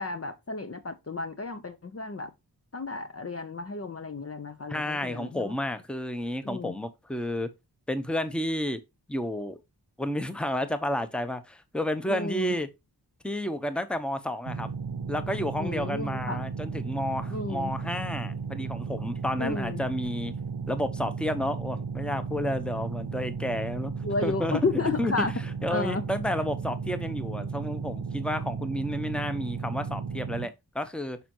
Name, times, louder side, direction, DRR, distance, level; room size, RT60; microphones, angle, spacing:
voice 1, 0.0-2.3 2.7-5.5 6.4-6.7 12.1-12.5 15.6-16.4 17.3-17.7 19.4-19.8 24.0-25.3 25.7-26.0, left 3 dB, 35° left, 0.8 m, -32 dB
voice 2, 4.7-7.5 7.9-8.8 9.1-9.6 10.0-12.7 13.2-14.7 15.1-20.3 20.7-23.9 24.2-24.6 25.0-25.2 25.6-31.2, left 1 dB, 5° left, 0.9 m, -31 dB
sound 1, 14.5-30.5, right 5 dB, 65° right, 0.8 m, -34 dB
6.8 x 5.2 x 3.0 m
cardioid pair, 40°, 40 cm